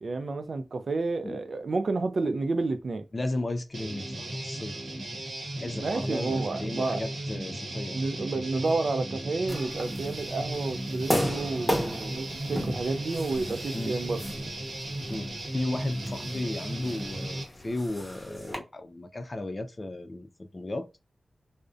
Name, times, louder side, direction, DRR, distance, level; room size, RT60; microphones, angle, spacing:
voice 1, 0.0-3.1 5.8-7.0 7.9-14.2, right 3 dB, 70° right, 0.3 m, -30 dB
voice 2, 3.1-4.8 5.6-8.0 13.7-13.9 15.1-20.9, left 2 dB, 40° left, 0.3 m, -35 dB
Guitar, 3.7-17.4, right 1 dB, 85° right, 0.8 m, -36 dB
sound 1, 9.5-18.6, equal, 5° left, 0.9 m, -35 dB
2.5 x 2.1 x 2.4 m
cardioid pair, 50°, 0 cm